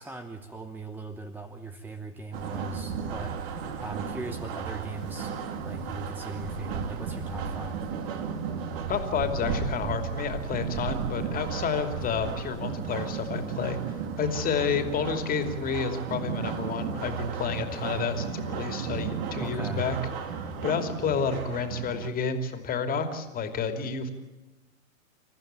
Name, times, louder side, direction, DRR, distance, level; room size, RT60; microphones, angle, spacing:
voice 1, 0.0-7.9 19.4-19.9, right 2 dB, 5° right, 10 dB, 0.9 m, -39 dB
sound 1, 2.3-22.1, right 6 dB, 45° right, 2.9 m, -34 dB
voice 2, 8.9-13.8 14.2-20.0 20.6-24.1, left 5 dB, 20° left, 8 dB, 2.8 m, -30 dB
28.5 x 14.5 x 9.0 m, 1.1 s
figure-of-eight pair, 115°, 41 cm